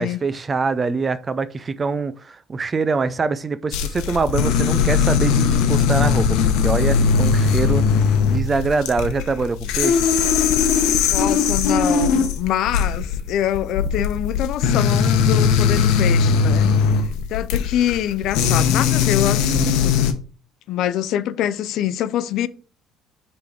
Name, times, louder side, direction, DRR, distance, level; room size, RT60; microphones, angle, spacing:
voice 1, 0.0-10.2, right 4 dB, 20° right, 0.3 m, -24 dB
sound 1, 3.7-20.1, left 6 dB, 90° left, 0.8 m, -19 dB
voice 2, 11.0-19.9 20.7-22.5, left 11 dB, 55° left, 0.4 m, -25 dB
5.8 x 3.8 x 5.0 m
cardioid pair, 175°, 0 cm